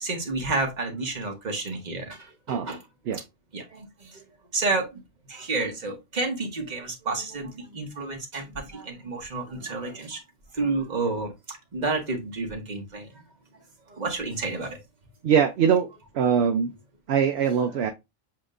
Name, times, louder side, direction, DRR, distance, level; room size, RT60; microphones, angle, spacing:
voice 1, 0.0-2.2 2.5-2.8 3.5-3.8 4.5-4.9 5.3-10.2 10.5-11.3 11.7-13.1 13.9-14.8, right 3 dB, 35° right, 1.3 m, -30 dB
voice 2, 15.2-15.9 16.1-16.7 17.1-17.9, right 7 dB, 60° right, 0.7 m, -22 dB
7.3 x 2.9 x 2.5 m
omnidirectional pair, 1.4 m